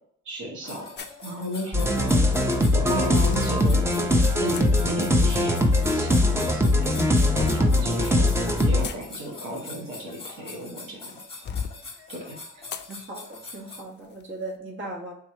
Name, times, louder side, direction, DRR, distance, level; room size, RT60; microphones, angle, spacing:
voice 1, 0.2-0.9 1.2-2.3 2.7-8.3 8.6-11.1 12.1-12.6, equal, 75° right, -2 dB, 1.3 m, -35 dB
sound 1, 0.6-13.8, left 3 dB, 20° left, 1.2 m, -43 dB
sound 2, 1.0-1.2 2.3-3.6 4.5-4.7 5.8-6.4 6.9-7.8 8.5-10.6 11.1-11.8 12.7-12.9 13.4-13.5 14.0-14.2, left 7 dB, 35° left, 0.4 m, -36 dB
sound 3, 1.7-8.9, left 1 dB, 10° right, 0.6 m, -21 dB
voice 2, 12.9-15.1, right 2 dB, 40° right, -2 dB, 1.4 m, -38 dB
3.6 x 3.0 x 4.5 m, 0.65 s
cardioid pair, 90°, 30 cm